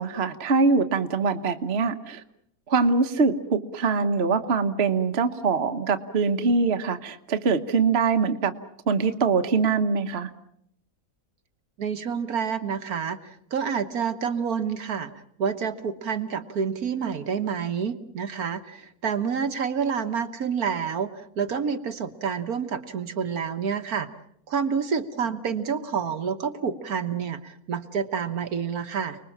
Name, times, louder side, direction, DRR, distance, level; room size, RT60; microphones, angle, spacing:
voice 1, 0.0-2.2 2.7-8.5 8.9-10.3, right 4 dB, 40° right, 7 dB, 1.3 m, -23 dB
voice 2, 11.8-15.1 15.4-24.1 24.5-29.2, right 6 dB, 65° right, 8 dB, 1.6 m, -28 dB
30.0 x 21.0 x 7.3 m, 0.72 s
omnidirectional pair, 1.7 m